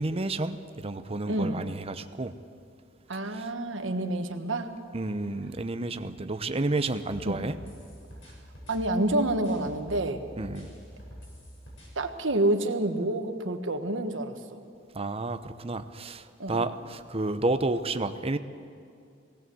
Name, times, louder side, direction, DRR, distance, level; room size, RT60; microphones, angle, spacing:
voice 1, 0.0-2.3 3.3-3.5 4.9-7.6 10.4-10.7 14.9-18.4, right 2 dB, 30° right, 10 dB, 0.8 m, -31 dB
voice 2, 1.3-1.6 3.1-4.7 7.2-7.4 8.7-10.2 11.9-14.4 16.4-16.7, right 1 dB, 75° right, 6 dB, 1.5 m, -28 dB
sound 1, 6.8-10.1 10.4-11.9, equal, 90° left, 6.8 m, -46 dB
19.0 x 18.0 x 7.8 m, 2.5 s
head